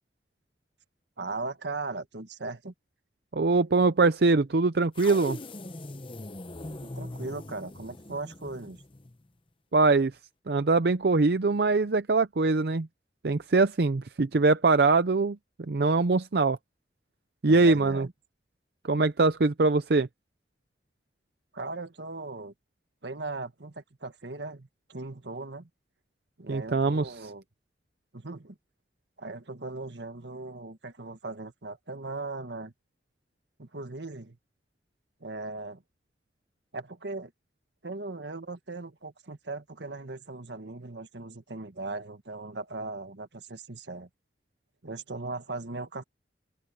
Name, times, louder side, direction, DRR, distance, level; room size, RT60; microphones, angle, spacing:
voice 1, 1.2-2.7 6.7-8.8 17.5-18.1 21.5-22.5 23.0-25.7 26.4-27.4 28.1-28.6 29.2-32.7 33.6-34.4 35.2-35.8 36.7-37.3 37.8-44.1 44.8-46.0, right 3 dB, 80° right, 1.7 m, -38 dB
voice 2, 3.3-5.4 9.7-10.1 10.5-12.9 13.2-15.4 15.7-16.6 17.4-18.1 18.8-20.1 26.5-27.1, right 3 dB, 65° right, 0.6 m, -23 dB
sound 1, 4.9-9.2, left 2 dB, 30° left, 0.8 m, -41 dB
open air
head